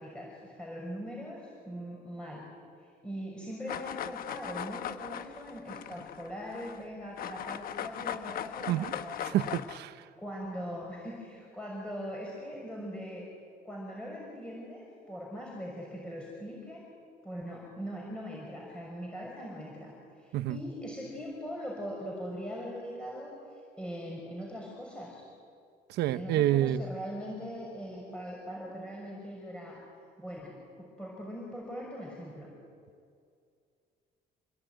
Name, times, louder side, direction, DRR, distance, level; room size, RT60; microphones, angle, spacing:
voice 1, 0.0-2.4 2.8-9.4 10.2-13.2 13.6-16.9 17.2-23.3 23.8-25.2 26.1-29.8 30.2-32.5, equal, 5° left, -3 dB, 6.2 m, -41 dB
sound 1, 3.7-6.8 7.2-9.8, left 10 dB, 60° left, 1.2 m, -39 dB
voice 2, 9.2-10.0 20.3-20.6 25.9-26.8, right 13 dB, 75° right, 13 dB, 1.0 m, -28 dB
27.0 x 20.5 x 9.3 m, 2.3 s
cardioid pair, 110°, 17 cm